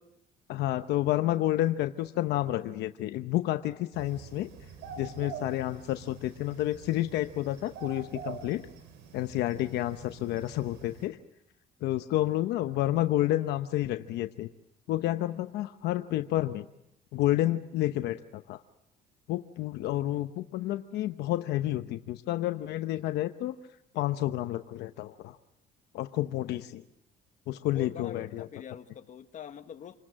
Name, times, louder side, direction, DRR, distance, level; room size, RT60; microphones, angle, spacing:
voice 1, 0.5-4.5 5.0-8.7 9.1-11.2 11.8-14.5 14.9-16.7 17.1-18.6 19.3-23.6 23.9-25.4 25.9-26.8 27.5-28.5, left 14 dB, 80° left, 9 dB, 0.9 m, -30 dB
sound 1, 3.9-11.1, right 7 dB, 90° right, 4.3 m, -46 dB
voice 2, 27.7-30.0, left 8 dB, 45° left, 8 dB, 1.5 m, -44 dB
27.5 x 20.5 x 7.5 m, 0.81 s
cardioid pair, 110°, 17 cm